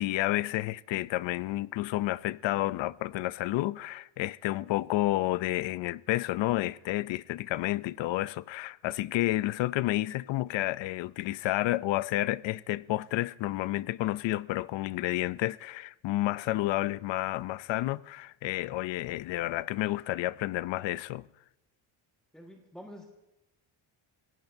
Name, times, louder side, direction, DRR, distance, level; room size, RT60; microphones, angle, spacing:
voice 1, 0.0-21.3, left 16 dB, 65° left, 0.5 m, -30 dB
voice 2, 22.3-23.1, equal, ahead, 1.5 m, -47 dB
27.0 x 17.0 x 2.6 m
cardioid pair, 155°, 48 cm